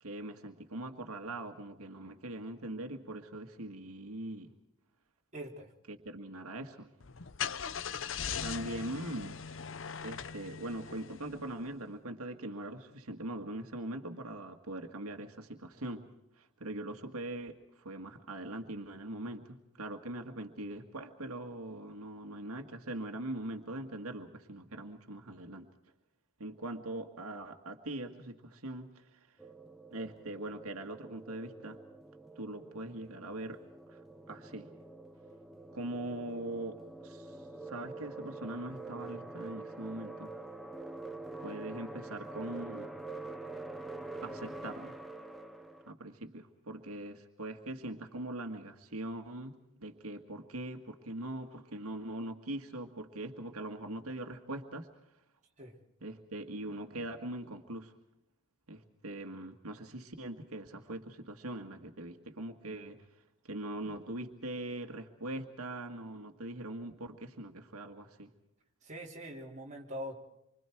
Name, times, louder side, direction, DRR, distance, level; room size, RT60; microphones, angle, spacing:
voice 1, 0.0-4.5 5.9-6.9 8.4-9.4 10.0-16.1 16.3-25.7 26.4-29.4 29.9-31.8 32.4-33.6 33.9-34.0 34.3-34.7 35.7-40.3 41.4-42.9 44.2-45.0 45.9-54.9 56.0-57.9 58.7-63.0 63.4-68.3, right 1 dB, 90° right, 5 dB, 1.8 m, -42 dB
voice 2, 5.3-5.7 55.6-55.7 68.8-70.1, equal, 35° right, -1 dB, 3.6 m, -43 dB
Car / Engine starting, 7.0-11.7, left 7 dB, 60° left, 0.8 m, -40 dB
sound 1, 29.4-45.9, right 2 dB, ahead, 1.1 m, -46 dB
27.5 x 25.0 x 4.6 m, 0.86 s
head